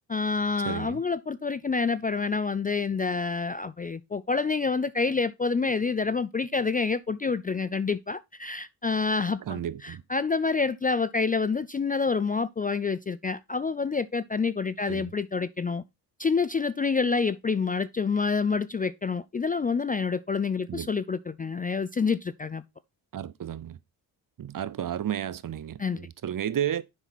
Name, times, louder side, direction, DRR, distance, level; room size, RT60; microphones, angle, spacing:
voice 1, 0.1-15.8 16.2-22.6 25.8-26.1, left 4 dB, 20° left, 0.3 m, -27 dB
voice 2, 0.6-1.0 9.5-10.0 14.9-15.1 20.7-20.9 23.1-23.8 24.4-26.8, right 10 dB, 50° right, 0.7 m, -32 dB
7.1 x 5.7 x 4.1 m
supercardioid pair, 50°, 44 cm